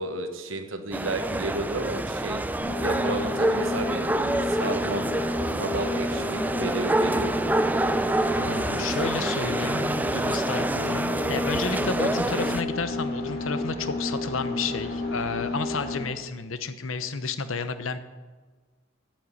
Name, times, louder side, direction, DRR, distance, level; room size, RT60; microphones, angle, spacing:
voice 1, 0.0-2.4 2.8-4.0 4.4-7.5, right 2 dB, 75° right, 7 dB, 1.2 m, -32 dB
sound 1, 0.9-12.6, right 1 dB, 10° right, 0.4 m, -27 dB
sound 2, 2.6-16.1, left 1 dB, 50° left, 4.3 m, -31 dB
voice 2, 8.3-18.0, left 4 dB, 85° left, 11 dB, 0.9 m, -31 dB
9.2 x 7.6 x 8.6 m, 1.3 s
head